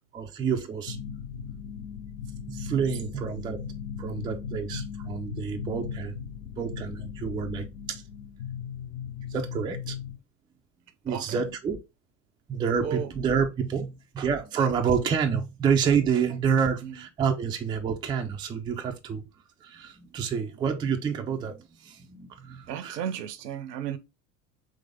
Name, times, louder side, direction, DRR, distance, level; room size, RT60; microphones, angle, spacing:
voice 1, 0.1-1.0 2.5-3.6 4.0-6.2 6.6-8.0 9.3-9.9 11.0-11.8 12.5-19.2 19.6-23.0, right 6 dB, 10° right, 0.3 m, -28 dB
sound 1, 0.9-10.2, left 7 dB, 70° left, 1.1 m, -38 dB
voice 2, 11.1-11.5 12.8-13.1 16.8-17.0 22.7-24.0, right 8 dB, 75° right, 0.7 m, -34 dB
3.8 x 3.1 x 3.4 m
figure-of-eight pair, 75°, 50 cm